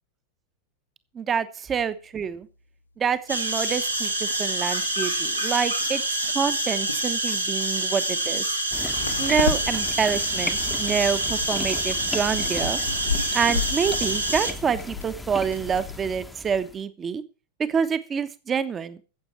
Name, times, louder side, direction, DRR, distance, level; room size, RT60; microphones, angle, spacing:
voice 1, 1.1-2.5 3.0-6.0 6.3-8.4 9.2-12.8 13.3-17.2 17.7-19.0, right 6 dB, 20° right, 12 dB, 1.1 m, -27 dB
sound 1, 2.2-2.3 8.9-16.0, left 5 dB, 80° left, 1.8 m, -34 dB
sound 2, 3.3-14.5, right 1 dB, 85° right, 2.3 m, -27 dB
sound 3, 8.7-16.8, left 2 dB, 5° left, 1.0 m, -37 dB
14.5 x 8.1 x 5.9 m, 0.35 s
figure-of-eight pair, 90°, 0 cm